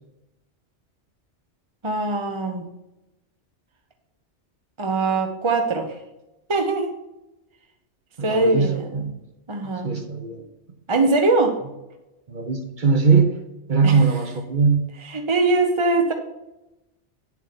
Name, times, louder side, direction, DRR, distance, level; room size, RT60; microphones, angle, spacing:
voice 1, 1.8-2.7 4.8-6.0 6.5-7.0 8.2-9.1 9.5-9.9 10.9-11.6 13.8-14.0 15.0-16.1, right 3 dB, 30° right, 4 dB, 0.8 m, -22 dB
voice 2, 8.2-9.1 9.8-10.4 12.3-13.3 13.7-14.9, right 5 dB, 45° right, 5 dB, 1.2 m, -20 dB
9.1 x 7.4 x 4.2 m, 0.95 s
omnidirectional pair, 1.2 m